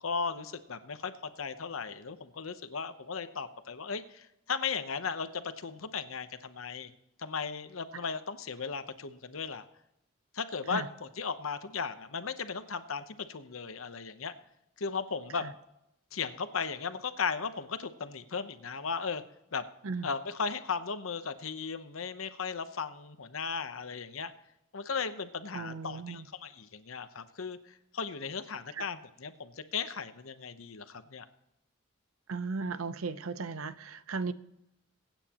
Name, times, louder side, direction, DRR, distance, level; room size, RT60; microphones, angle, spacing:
voice 1, 0.0-1.1 1.4-6.9 7.2-9.6 10.3-14.3 14.8-15.5 16.1-19.2 19.5-19.6 20.0-24.3 24.7-31.2, left 5 dB, 80° left, 0.9 m, -36 dB
voice 2, 25.5-26.3 28.7-28.8 32.3-34.3, right 4 dB, 85° right, 0.7 m, -36 dB
23.0 x 9.1 x 3.0 m
head